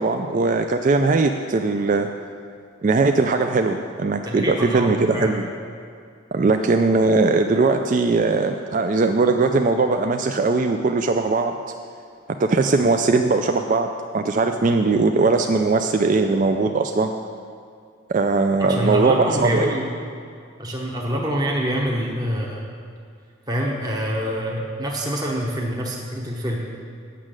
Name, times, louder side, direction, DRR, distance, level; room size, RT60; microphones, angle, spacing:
voice 1, 0.0-2.1 2.8-5.5 6.3-11.5 12.4-13.9 14.1-17.1 18.1-19.7, right 3 dB, 40° right, 6 dB, 0.3 m, -20 dB
voice 2, 4.3-5.4 18.6-19.9 20.6-22.6 23.5-26.6, equal, 20° right, -2 dB, 0.9 m, -25 dB
8.4 x 6.2 x 7.5 m, 2.3 s
head